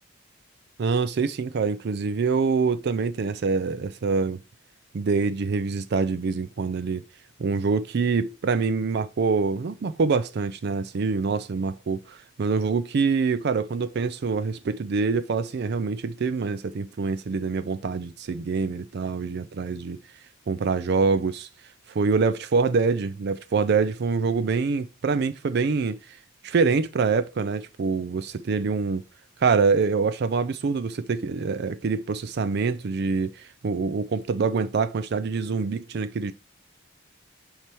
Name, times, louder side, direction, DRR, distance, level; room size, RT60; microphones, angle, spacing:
voice 1, 0.8-4.4 4.9-7.0 7.4-20.0 20.5-21.5 21.9-26.2 26.4-29.0 29.4-36.3, right 4 dB, 55° right, 0.4 m, -25 dB
8.8 x 3.4 x 4.5 m
head